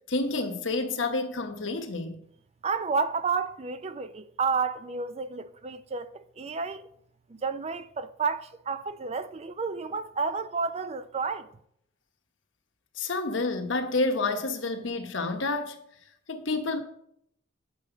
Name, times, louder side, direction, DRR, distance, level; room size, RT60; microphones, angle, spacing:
voice 1, 0.1-2.2 13.0-15.8 16.3-16.8, left 3 dB, 65° left, 1.1 m, -29 dB
voice 2, 2.6-6.9 7.3-11.5, right 5 dB, 30° right, 0.4 m, -31 dB
8.5 x 6.3 x 5.0 m
head